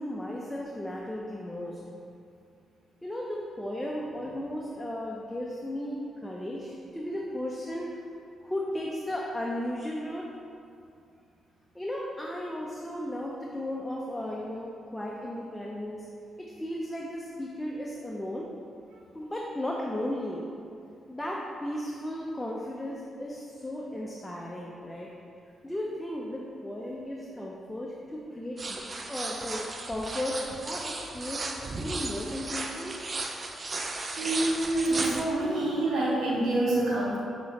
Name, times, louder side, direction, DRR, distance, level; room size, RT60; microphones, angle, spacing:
voice 1, 0.0-1.8 3.0-8.0 8.4-10.3 11.7-16.1 16.4-18.5 19.1-20.4 21.1-25.1 25.6-28.8 29.1-31.4 31.8-33.0, left 1 dB, 15° left, -3 dB, 0.5 m, -35 dB
sound 1, 28.6-35.2, right 3 dB, 40° right, 0.4 m, -35 dB
voice 2, 34.2-37.2, right 2 dB, 75° right, -6 dB, 0.7 m, -27 dB
6.1 x 2.9 x 2.9 m, 2.5 s
supercardioid pair, 60°, 0 cm